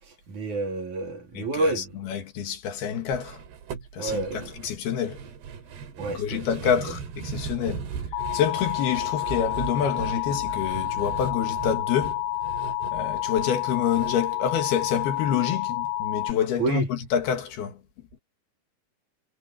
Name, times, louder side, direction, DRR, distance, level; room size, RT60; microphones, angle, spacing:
voice 1, 0.3-2.0 4.0-4.5 6.0-6.4 7.6-7.7 16.6-16.9, right 2 dB, 50° right, 3.9 m, -29 dB
voice 2, 1.4-3.4 3.9-5.2 6.1-7.8 8.3-12.2 12.9-17.8, left 8 dB, 70° left, 3.8 m, -27 dB
sound 1, 3.1-15.4 15.7-15.8 16.1-16.2, right 6 dB, 80° right, 4.9 m, -38 dB
Alarm, 8.1-16.3, left 13 dB, 90° left, 2.9 m, -29 dB
omnidirectional pair, 4.7 m